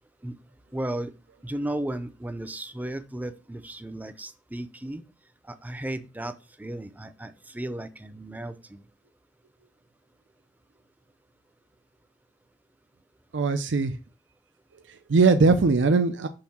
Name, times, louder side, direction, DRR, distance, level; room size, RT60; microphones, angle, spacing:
voice 1, 0.7-1.1 1.4-5.0 5.4-8.8, right 1 dB, 10° right, 10 dB, 0.5 m, -35 dB
voice 2, 13.3-14.0 14.9-16.3, right 4 dB, 85° right, 8 dB, 0.5 m, -21 dB
6.5 x 3.4 x 5.7 m, 0.32 s
head